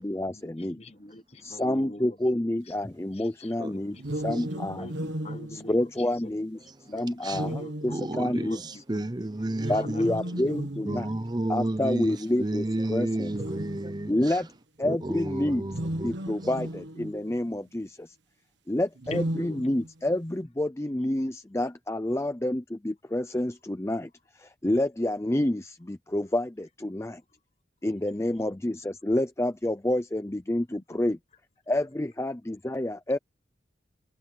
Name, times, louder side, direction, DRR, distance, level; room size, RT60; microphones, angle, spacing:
voice 1, 0.0-0.8 1.4-4.9 5.5-6.6 6.9-8.8 9.7-11.2 11.5-13.4 14.1-14.5 14.8-15.7 16.0-18.2 18.7-24.1 24.3-27.2 27.8-31.2 31.7-33.2, left 1 dB, 15° left, 0.5 m, -28 dB
voice 2, 0.7-2.1 3.7-5.9 6.9-7.7 8.1-8.6 8.9-9.0 9.7-10.6 19.1-19.5, left 1 dB, 35° left, 1.2 m, -43 dB
sound 1, 4.0-6.4 7.3-8.6 9.5-11.4 12.2-12.3 13.3-14.3 15.6-17.4 19.0-20.2, right 1 dB, 75° right, 1.5 m, -35 dB
voice 3, 4.1-4.4 6.6-6.7 7.2-7.4 7.9-10.1 10.9-14.4 14.8-16.1, right 1 dB, 20° right, 0.7 m, -32 dB
head